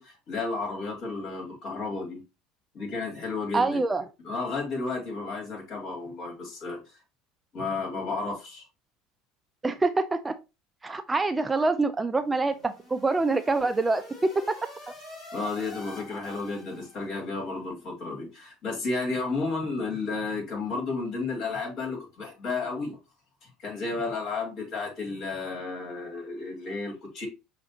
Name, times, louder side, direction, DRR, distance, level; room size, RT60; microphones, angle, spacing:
voice 1, 0.0-2.2 2.7-3.8 4.2-6.8 7.5-8.7 15.3-23.0 23.4-27.3, left 3 dB, 55° left, 2.3 m, -32 dB
voice 2, 3.5-4.0 9.6-10.3 10.8-14.6, right 3 dB, 15° right, 0.4 m, -25 dB
sound 1, 12.2-17.2, left 2 dB, 35° left, 2.8 m, -46 dB
6.0 x 2.5 x 2.9 m
supercardioid pair, 105°, 0 cm